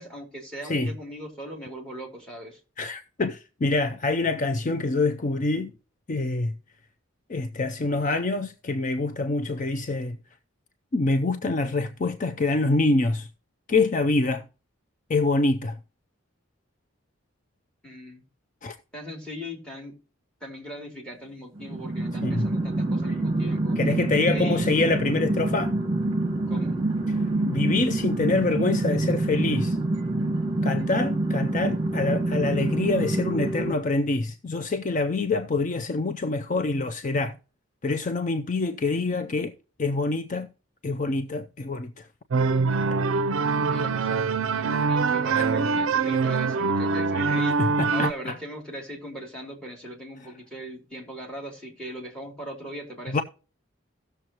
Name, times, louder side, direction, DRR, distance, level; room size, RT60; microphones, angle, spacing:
voice 1, 0.0-2.6 17.8-18.2 18.9-20.0 20.4-23.8 24.3-24.7 26.5-26.8 43.7-53.2, equal, 5° left, 2.8 m, -39 dB
voice 2, 2.8-5.7 6.1-6.5 7.3-10.2 10.9-13.3 13.7-14.4 15.1-15.8 18.6-18.8 22.2-22.5 23.8-25.7 27.1-27.2 27.5-29.8 30.6-37.4 37.8-39.5 39.8-40.5 40.8-42.1 45.3-45.4 47.6-48.4 53.1-53.2, left 3 dB, 35° left, 0.4 m, -26 dB
sound 1, 21.6-33.8, right 2 dB, 25° right, 1.4 m, -26 dB
sound 2, 42.3-48.1, right 4 dB, 70° right, 0.5 m, -24 dB
16.5 x 6.7 x 2.9 m
head